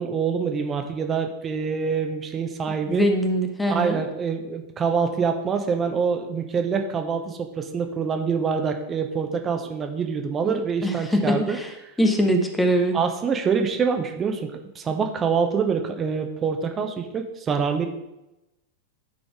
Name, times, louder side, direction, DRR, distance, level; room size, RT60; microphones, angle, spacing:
voice 1, 0.0-3.1 3.7-11.6 12.9-17.9, right 6 dB, 25° right, 5 dB, 0.8 m, -25 dB
voice 2, 2.9-4.0 10.4-11.7 12.0-13.0, equal, 5° left, 4 dB, 1.1 m, -23 dB
10.0 x 3.9 x 4.7 m, 0.93 s
figure-of-eight pair, 90°, 0 cm